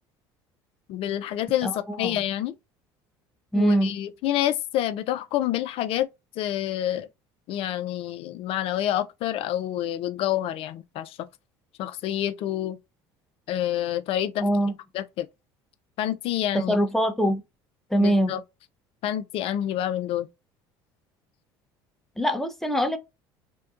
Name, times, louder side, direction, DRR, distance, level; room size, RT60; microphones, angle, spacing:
voice 1, 0.9-2.5 3.6-6.1 6.4-7.1 7.5-11.2 11.8-12.8 13.5-14.5 14.9-15.3 16.0-16.7 18.0-18.4 19.0-20.3, left 12 dB, 60° left, 0.4 m, -28 dB
voice 2, 1.6-2.2 3.5-3.9 14.4-14.7 16.5-17.4 17.9-18.3 22.2-23.0, right 1 dB, 5° left, 0.6 m, -23 dB
2.7 x 2.2 x 2.4 m
supercardioid pair, 80°, 11 cm